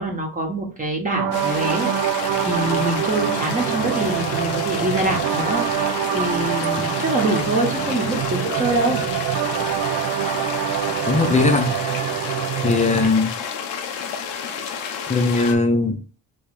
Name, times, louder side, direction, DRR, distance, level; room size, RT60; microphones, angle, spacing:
voice 1, 0.0-5.8 6.1-9.0, right 2 dB, 20° right, 1.1 m, -25 dB
sound 1, 1.1-13.1, right 11 dB, 55° right, 0.6 m, -25 dB
sound 2, 1.3-15.5, left 7 dB, 80° left, 0.9 m, -30 dB
voice 2, 11.1-11.8 12.6-13.3 15.1-16.0, left 3 dB, 20° left, 0.8 m, -19 dB
3.5 x 3.1 x 4.6 m
cardioid pair, 105°, 40 cm